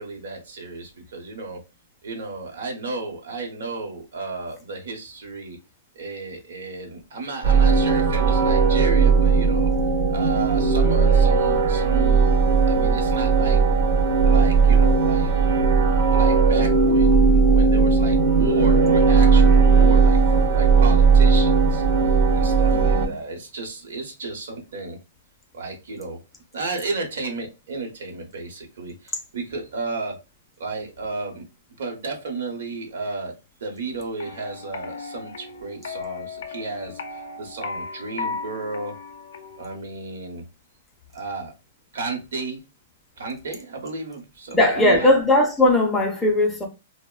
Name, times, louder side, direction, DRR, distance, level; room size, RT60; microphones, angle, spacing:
voice 1, 0.0-1.6 2.0-5.6 5.9-9.7 10.1-12.4 12.7-13.6 14.2-15.3 16.1-21.8 22.3-25.0 25.5-26.2 26.5-30.2 30.6-31.4 31.8-33.3 33.6-37.0 37.4-39.0 39.6-40.4 41.1-41.5 41.9-42.6 43.2-45.1, right 3 dB, 75° right, 0.8 m, -33 dB
sound 1, 7.4-23.1, right 5 dB, 50° right, 0.4 m, -17 dB
voice 2, 22.7-23.1 44.5-46.7, left 1 dB, 10° left, 0.4 m, -19 dB
sound 2, 34.2-39.8, left 4 dB, 75° left, 0.4 m, -36 dB
2.9 x 2.0 x 2.3 m
hypercardioid pair, 160°, 0 cm